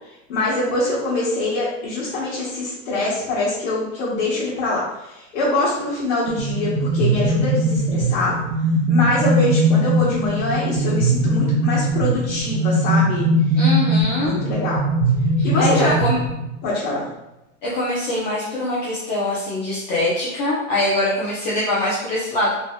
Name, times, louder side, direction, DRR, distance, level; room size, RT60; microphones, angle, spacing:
voice 1, 0.3-8.4 8.9-13.2 14.2-14.8 15.4-15.9 16.6-17.0, left 2 dB, 70° left, -10 dB, 1.3 m, -24 dB
sound 1, 6.3-16.7, right 1 dB, 45° right, 0.4 m, -20 dB
voice 2, 13.5-14.4 15.4-16.2 17.6-22.5, left 1 dB, 35° left, -8 dB, 0.6 m, -23 dB
3.1 x 2.7 x 2.2 m, 0.92 s
supercardioid pair, 175°, 39 cm